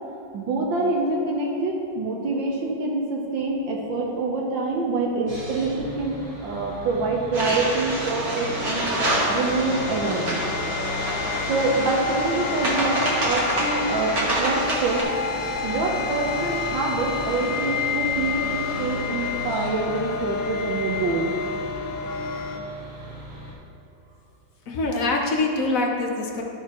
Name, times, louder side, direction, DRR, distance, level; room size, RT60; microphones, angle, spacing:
voice 1, 0.3-8.9 9.3-10.4 11.5-15.0 15.6-21.3, right 3 dB, 75° right, -2 dB, 1.6 m, -26 dB
Sawing, 5.3-23.5, equal, 30° right, 1.6 m, -37 dB
sound 1, 7.3-15.0, right 1 dB, 50° right, 1.9 m, -27 dB
sound 2, 8.1-22.6, left 5 dB, 80° left, 1.4 m, -30 dB
voice 2, 24.7-26.4, left 2 dB, 55° left, 1 dB, 1.1 m, -24 dB
12.0 x 6.4 x 2.9 m, 2.7 s
omnidirectional pair, 2.1 m